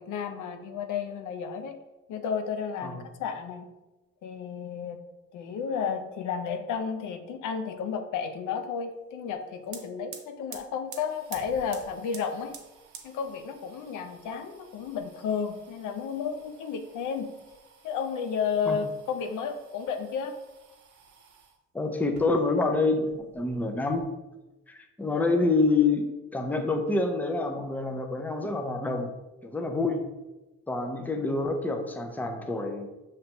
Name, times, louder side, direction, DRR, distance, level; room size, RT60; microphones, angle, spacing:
voice 1, 0.0-1.8 2.1-3.7 4.2-5.0 5.3-12.6 13.0-17.3 17.8-20.3, left 6 dB, 80° left, 7 dB, 0.6 m, -32 dB
sound 1, 9.3-9.4 9.6-21.6 22.0-22.8 23.1-24.1, right 7 dB, 75° right, 0.7 m, -50 dB
voice 2, 21.7-24.1 24.7-26.0 26.3-29.1 29.4-30.0 30.7-32.9, left 3 dB, 5° left, 5 dB, 0.5 m, -27 dB
5.7 x 3.2 x 2.9 m, 1.1 s
cardioid pair, 90°, 30 cm